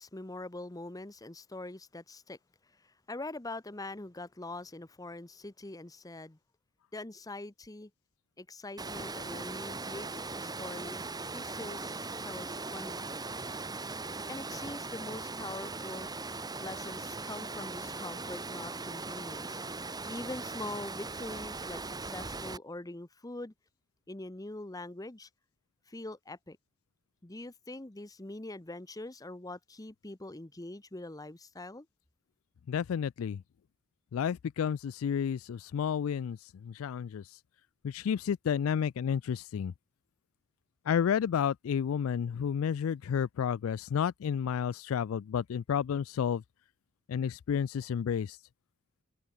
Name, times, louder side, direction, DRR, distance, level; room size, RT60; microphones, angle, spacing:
voice 1, 0.0-2.4 3.1-6.4 6.9-7.9 8.4-11.0 11.3-13.1 14.3-16.1 16.6-19.6 20.1-23.5 24.1-25.3 25.9-26.6 27.2-31.9, left 2 dB, 15° left, 0.9 m, -43 dB
Water, 8.8-22.6, right 3 dB, 20° right, 1.9 m, -39 dB
voice 2, 32.7-33.4 34.1-37.2 37.8-39.7 40.9-46.4 47.1-48.4, left 7 dB, 85° left, 0.3 m, -31 dB
open air
head